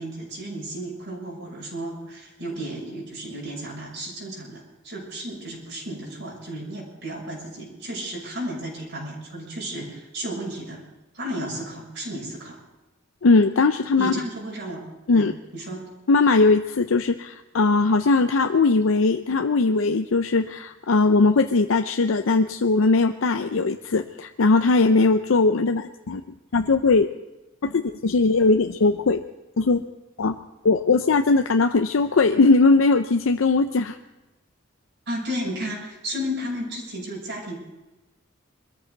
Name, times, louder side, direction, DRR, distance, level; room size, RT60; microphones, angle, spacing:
voice 1, 0.0-10.8 11.1-12.6 13.9-14.8 15.1-15.9 35.1-37.5, equal, 65° right, -3 dB, 6.4 m, -33 dB
voice 2, 13.2-14.1 15.1-15.3 16.1-26.2 26.5-27.1 27.6-29.2 29.6-29.8 30.2-30.4 30.6-34.0, left 3 dB, 85° left, 7 dB, 0.6 m, -19 dB
22.5 x 13.5 x 4.0 m, 1.1 s
head